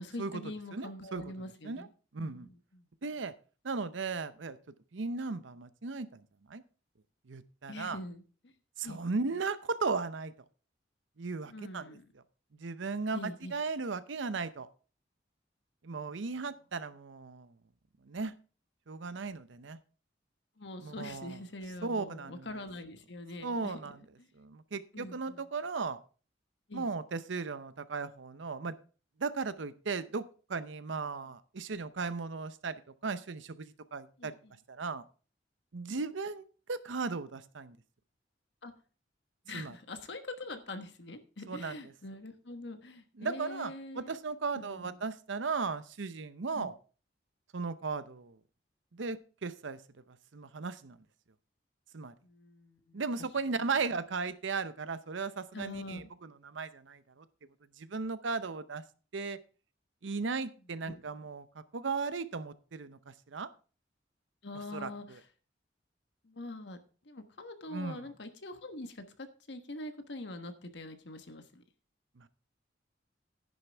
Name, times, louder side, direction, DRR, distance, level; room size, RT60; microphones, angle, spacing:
voice 1, 0.0-1.9 2.2-2.9 7.7-8.5 8.8-9.0 11.4-12.1 13.1-13.6 20.6-24.3 24.9-25.4 26.7-26.9 34.2-34.5 38.6-38.7 39.4-44.2 44.5-45.1 46.5-46.7 52.2-53.0 55.5-56.1 60.9-61.0 64.4-65.2 66.2-66.8 67.0-71.6, left 2 dB, 65° left, 7 dB, 1.3 m, -44 dB
voice 2, 0.7-1.9 2.1-2.5 3.0-3.3 3.6-4.6 4.9-6.2 6.5-6.6 7.3-8.0 8.8-10.3 11.2-12.0 12.5-14.7 15.8-17.5 18.0-18.3 18.9-19.8 20.8-21.4 21.8-22.5 23.4-24.0 24.4-26.0 26.7-28.8 29.2-34.3 34.7-35.0 35.7-37.8 39.5-39.8 41.5-41.8 43.2-46.7 47.5-48.4 48.9-49.8 50.1-51.0 51.9-52.1 52.9-57.2 57.8-58.8 59.1-59.4 60.0-63.5 64.7-65.2 67.7-68.1 72.2-72.3, right 4 dB, 80° right, 14 dB, 0.7 m, -36 dB
10.5 x 10.0 x 3.4 m, 0.38 s
head